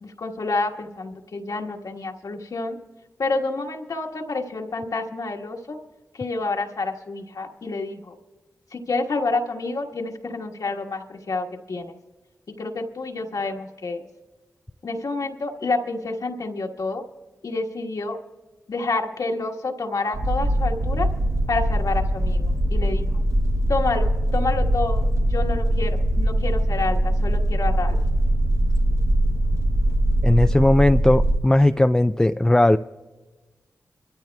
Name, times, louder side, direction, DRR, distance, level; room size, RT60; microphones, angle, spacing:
voice 1, 0.0-2.8 3.2-5.8 6.1-8.1 8.7-12.0 12.6-14.0 14.8-17.0 17.4-18.2 18.7-21.1 21.5-23.2 23.7-28.0, left 3 dB, 70° left, 2 dB, 1.4 m, -28 dB
sound 1, 20.1-31.4, right 1 dB, 55° right, 0.9 m, -22 dB
voice 2, 30.2-32.8, left 1 dB, 10° left, 9 dB, 0.3 m, -17 dB
24.0 x 13.5 x 2.3 m, 1.3 s
cardioid pair, 50°, 6 cm